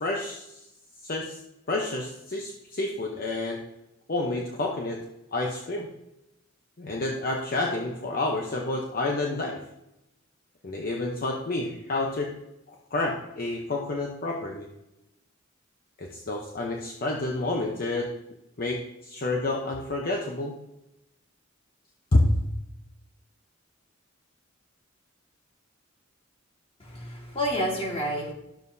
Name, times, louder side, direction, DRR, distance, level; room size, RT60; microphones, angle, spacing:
voice 1, 0.0-0.6 1.0-1.4 1.7-3.6 4.1-5.0 5.3-5.9 6.8-9.6 10.6-12.3 12.9-14.7 16.0-18.1 18.6-20.5 22.1-22.3, left 2 dB, 45° left, 0 dB, 0.9 m, -29 dB
voice 2, 26.8-28.3, equal, 30° left, -1 dB, 1.8 m, -29 dB
11.5 x 7.2 x 2.7 m, 0.89 s
head